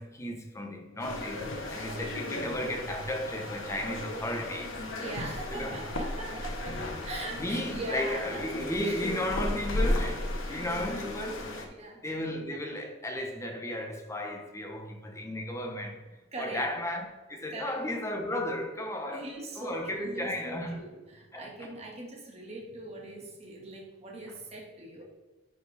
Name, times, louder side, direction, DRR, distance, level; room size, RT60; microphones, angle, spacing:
voice 1, 0.0-4.8 5.5-5.7 7.3-11.7 12.0-16.0 16.4-19.3 19.5-20.8 21.3-21.7, left 1 dB, 15° left, 1.0 m, -34 dB
sound 1, 1.0-11.6, left 1 dB, 90° left, 1.3 m, -35 dB
voice 2, 1.8-2.1 5.0-9.7 10.4-10.9 11.8-12.0 16.3-16.6 17.5-17.8 19.0-25.0, right 1 dB, 30° right, 1.7 m, -41 dB
11.0 x 5.1 x 3.4 m
head